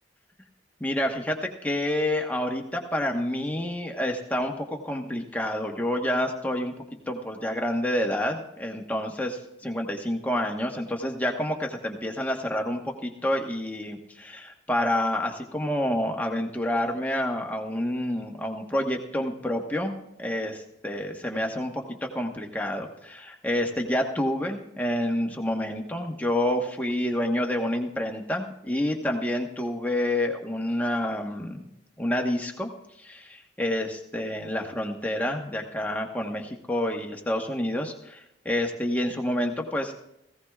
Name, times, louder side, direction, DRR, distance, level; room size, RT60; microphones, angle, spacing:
voice 1, 0.8-6.7 7.1-19.9 20.2-21.8 22.1-31.7 32.0-32.7 33.0-39.9, left 1 dB, 10° left, 2 dB, 1.2 m, -28 dB
17.5 x 16.5 x 2.4 m, 0.83 s
head